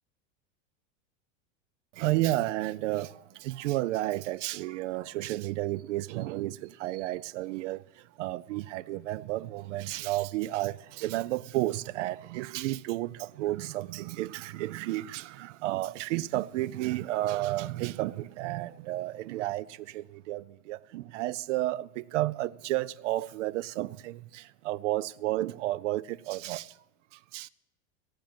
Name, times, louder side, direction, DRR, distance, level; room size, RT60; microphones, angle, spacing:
voice 1, 1.9-26.8 27.1-27.5, right 16 dB, 80° right, 0.5 m, -32 dB
17.0 x 7.4 x 7.4 m
supercardioid pair, 170°, 36 cm